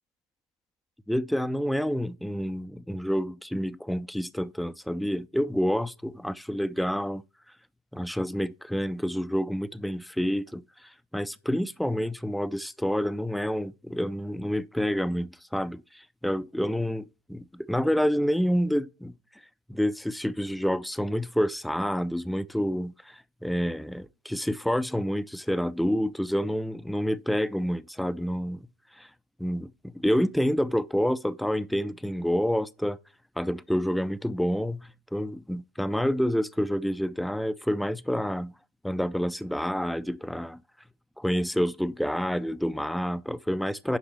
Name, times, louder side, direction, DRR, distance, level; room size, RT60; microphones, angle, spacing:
voice 1, 1.1-7.2 7.9-10.6 11.1-15.8 16.2-19.1 19.7-28.7 29.0-29.1 29.4-33.0 33.4-38.5 38.8-40.6 41.2-44.0, equal, ahead, 0.4 m, -28 dB
9.5 x 6.0 x 4.5 m
figure-of-eight pair, 90°, 0 cm